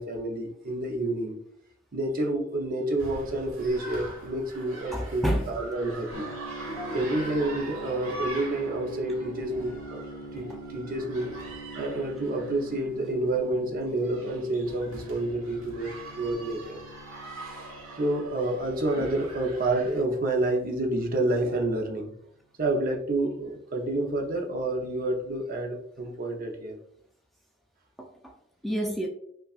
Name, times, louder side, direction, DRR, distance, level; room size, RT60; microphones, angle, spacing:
voice 1, 0.0-1.4 1.9-6.3 6.9-10.0 10.3-11.3 11.7-16.8 17.4-17.7 18.0-22.1 22.6-26.8, right 2 dB, 45° right, 0.7 m, -29 dB
sound 1, 3.0-20.0, right 2 dB, 85° right, 1.4 m, -43 dB
voice 2, 4.9-5.5 6.7-7.1 28.0-28.3 28.6-29.1, equal, ahead, 0.3 m, -30 dB
sound 2, 6.1-22.0, right 1 dB, 60° left, 0.7 m, -44 dB
5.4 x 2.4 x 2.4 m
head